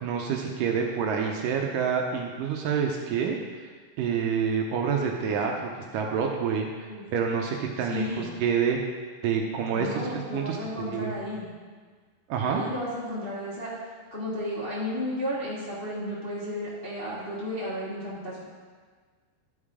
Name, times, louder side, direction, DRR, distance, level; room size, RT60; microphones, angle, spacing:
voice 1, 0.0-3.4 3.6-3.7 4.0-8.8 9.2-11.2 12.3-12.6, right 6 dB, 75° right, 1 dB, 2.1 m, -28 dB
voice 2, 7.8-8.3 9.7-11.5 12.5-13.7 14.1-18.4, left 1 dB, 40° left, -8 dB, 0.8 m, -33 dB
12.0 x 5.6 x 4.9 m, 1.5 s
omnidirectional pair, 4.3 m